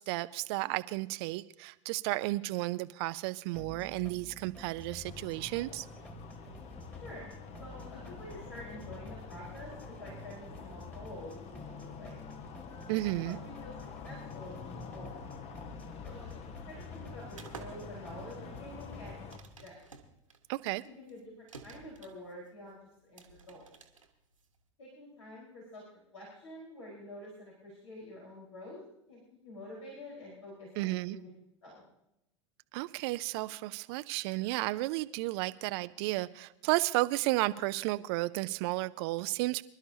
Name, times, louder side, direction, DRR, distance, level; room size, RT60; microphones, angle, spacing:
voice 1, 0.0-5.9 12.9-13.4 20.5-20.8 30.8-31.2 32.7-39.6, right 20 dB, 55° right, 14 dB, 0.4 m, -33 dB
sound 1, 3.6-19.5, left 1 dB, 10° left, 1.9 m, -49 dB
sound 2, 5.0-19.4, left 6 dB, 40° left, 1.2 m, -48 dB
voice 2, 6.9-7.3 7.6-12.2 13.1-13.7 14.0-15.3 16.0-19.3 19.6-19.8 20.8-23.6 24.8-25.8 26.1-28.8 29.1-31.3 31.6-31.8, left 1 dB, 75° left, -5 dB, 4.5 m, -48 dB
sound 3, 17.3-24.7, right 5 dB, 90° right, 1.5 m, -53 dB
25.5 x 12.0 x 2.8 m, 0.84 s
figure-of-eight pair, 80°, 16 cm